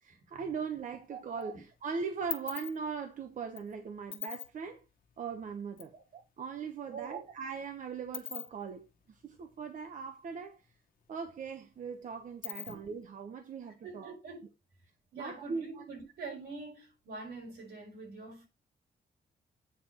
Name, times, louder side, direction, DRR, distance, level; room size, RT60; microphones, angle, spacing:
voice 1, 0.0-4.8 5.2-10.6 11.1-14.1 15.1-15.7, right 5 dB, 55° right, 1.1 m, -40 dB
sound 1, 0.6-1.4 1.7-5.9 6.2-6.3 6.6-10.4 10.7-10.8 11.1-13.1, left 10 dB, 65° left, 1.2 m, -44 dB
voice 2, 0.9-1.6 5.9-6.0 6.9-7.2 12.6-12.8 13.8-14.5 15.1-18.5, right 4 dB, 85° right, 5.1 m, -45 dB
8.6 x 4.7 x 5.5 m
wide cardioid pair, 150°, 16 cm